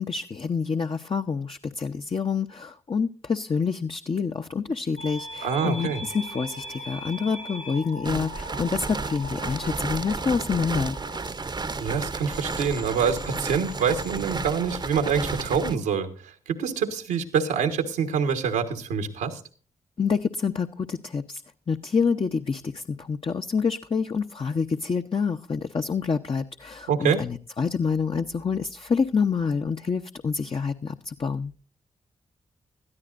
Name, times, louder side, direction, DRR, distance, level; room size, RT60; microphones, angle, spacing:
voice 1, 0.0-11.0 20.0-21.4 21.7-31.5, left 5 dB, 40° left, 5 dB, 0.8 m, -27 dB
sound 1, 5.0-14.3, equal, 85° left, 5.4 m, -41 dB
voice 2, 5.4-6.0 11.8-19.4 26.9-27.2, right 6 dB, 90° right, 5 dB, 1.4 m, -26 dB
sound 2, 8.0-15.8, right 4 dB, 30° right, 0.8 m, -32 dB
19.5 x 13.0 x 2.5 m, 0.39 s
supercardioid pair, 40°, 14 cm